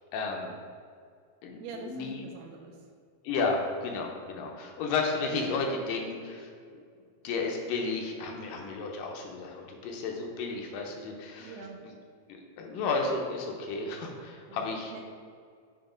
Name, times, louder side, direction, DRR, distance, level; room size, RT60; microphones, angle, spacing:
voice 1, 0.1-0.5 1.4-2.3 3.2-6.5 7.2-11.6 11.8-11.9 12.3-15.0, left 3 dB, 80° left, 1 dB, 2.2 m, -33 dB
voice 2, 1.6-2.8 11.4-11.8 14.5-14.6 14.9-15.0, right 5 dB, 85° right, 2 dB, 2.4 m, -43 dB
7.4 x 2.7 x 4.9 m, 2.2 s
omnidirectional pair, 4.0 m